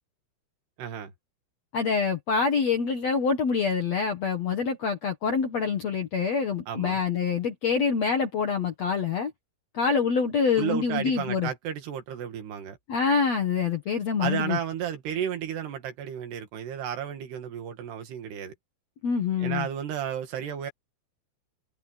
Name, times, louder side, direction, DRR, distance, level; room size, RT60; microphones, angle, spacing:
voice 1, 0.8-1.1 6.7-7.0 10.6-12.8 14.2-18.5 19.4-20.7, right 9 dB, 70° right, 4.0 m, -33 dB
voice 2, 1.7-9.3 9.7-11.5 12.9-14.6 19.0-19.7, left 5 dB, 60° left, 1.9 m, -26 dB
omnidirectional pair, 5.1 m